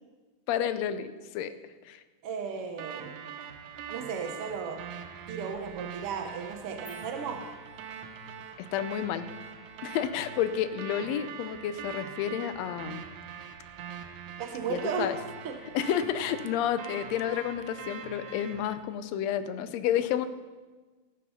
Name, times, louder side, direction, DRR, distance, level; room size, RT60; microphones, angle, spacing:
voice 1, 0.5-1.5 1.8-2.0 8.6-9.3 9.8-13.1 14.7-15.2 15.7-20.3, left 10 dB, 75° left, 12 dB, 1.7 m, -30 dB
voice 2, 2.2-3.1 3.9-4.8 5.3-7.4 14.4-15.1 15.4-15.6, right 6 dB, 65° right, 4 dB, 1.5 m, -35 dB
sound 1, 2.8-18.8, right 7 dB, 85° right, 2.4 m, -43 dB
sound 2, 6.9-8.4, left 4 dB, 40° left, 0.9 m, -56 dB
17.5 x 7.3 x 5.5 m, 1.3 s
omnidirectional pair, 3.4 m